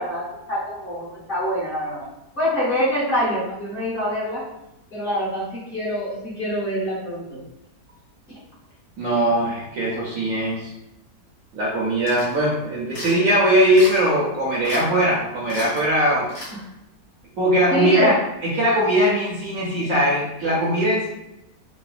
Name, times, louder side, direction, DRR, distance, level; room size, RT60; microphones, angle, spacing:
voice 1, 0.0-2.1 2.4-4.4 4.9-7.4 17.7-18.2, equal, 35° left, -9 dB, 1.4 m, -25 dB
voice 2, 9.0-10.7 11.5-16.3 17.4-18.2 18.4-21.1, equal, 60° right, -5 dB, 0.9 m, -20 dB
sound 1, 12.1-12.4 12.9-13.2 13.7-14.2 14.6-14.8 15.1-15.2 15.5-15.8 16.3-16.5, equal, 65° left, 2.0 m, -34 dB
4.1 x 2.2 x 2.4 m, 0.88 s
omnidirectional pair, 1.8 m